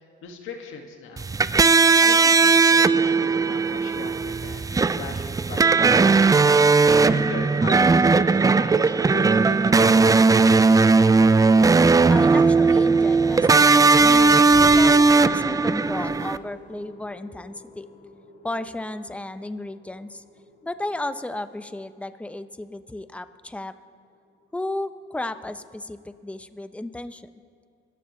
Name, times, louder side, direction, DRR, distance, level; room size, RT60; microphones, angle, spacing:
voice 1, 0.2-1.3 2.0-6.3 7.0-10.9, left 5 dB, 85° left, 3 dB, 1.9 m, -38 dB
sound 1, 1.2-16.4, right 4 dB, 15° right, 0.4 m, -17 dB
voice 2, 12.1-17.9 18.4-20.2 20.6-23.7 24.5-27.3, left 2 dB, 5° left, 11 dB, 0.7 m, -34 dB
sound 2, 12.3-24.4, left 3 dB, 40° left, 2.2 m, -42 dB
26.5 x 14.5 x 3.2 m, 2.4 s
cardioid pair, 90°, 20 cm